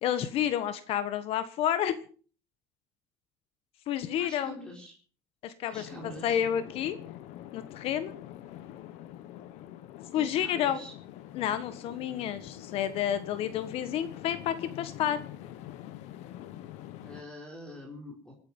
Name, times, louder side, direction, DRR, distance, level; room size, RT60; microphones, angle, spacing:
voice 1, 0.0-1.9 3.9-4.5 5.4-7.0 7.5-8.1 10.1-10.8 11.3-15.2, left 10 dB, 55° left, 11 dB, 1.5 m, -30 dB
voice 2, 4.2-4.9 5.6-6.4 10.1-10.9 17.0-18.3, equal, 5° left, 0 dB, 4.3 m, -45 dB
sound 1, 5.7-17.2, left 13 dB, 75° left, 1.5 m, -45 dB
27.0 x 9.7 x 5.5 m, 0.41 s
cardioid pair, 160°, 12 cm